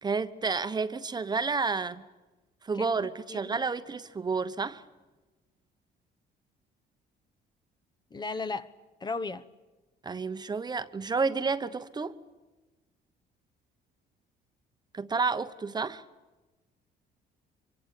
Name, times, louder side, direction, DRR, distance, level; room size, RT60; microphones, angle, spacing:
voice 1, 0.0-2.0 2.6-4.8 10.0-12.2 14.9-16.0, right 4 dB, 25° right, 1.1 m, -30 dB
voice 2, 3.3-3.6 8.1-8.7 9.0-9.5, left 3 dB, 25° left, 1.0 m, -35 dB
25.0 x 24.5 x 9.0 m
cardioid pair, 110°, 17 cm